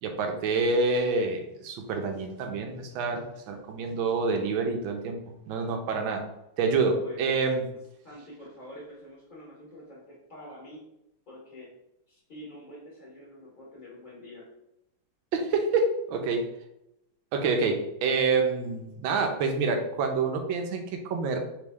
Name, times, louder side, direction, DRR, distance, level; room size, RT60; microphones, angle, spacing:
voice 1, 0.0-6.2 6.6-7.7 15.3-16.5 17.3-21.4, right 4 dB, 80° right, 4 dB, 1.4 m, -27 dB
voice 2, 6.9-7.3 7.6-7.7 8.0-10.8 11.3-11.7 12.1-14.5, left 1 dB, 35° left, -6 dB, 0.9 m, -46 dB
4.0 x 3.1 x 3.4 m, 0.83 s
omnidirectional pair, 2.2 m